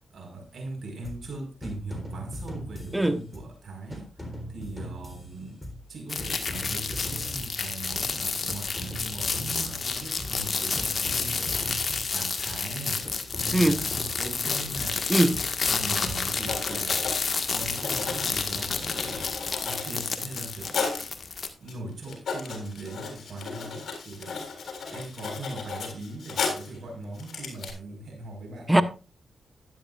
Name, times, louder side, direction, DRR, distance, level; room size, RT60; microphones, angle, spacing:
voice 1, 0.0-5.6 5.9-15.0 15.7-17.0 17.5-20.9 21.6-24.5 24.9-28.8, right 2 dB, 65° right, 5.1 m, -40 dB
sound 1, 1.0-1.3 1.6-3.6 3.9-5.9 6.2-8.1 8.5-10.5 10.8-12.7 13.0-15.0 15.3-17.2 17.6-19.3, equal, 20° left, 3.8 m, -41 dB
sound 2, 6.1-21.5, left 4 dB, 55° left, 1.7 m, -30 dB
voice 2, 15.1-15.4 28.7-28.8, right 1 dB, 10° right, 1.2 m, -20 dB
Writing, 16.4-21.1 21.7-21.8 22.0-26.8 27.2-27.7, left 5 dB, 75° left, 3.6 m, -35 dB
12.0 x 10.5 x 2.5 m
supercardioid pair, 50°, 0 cm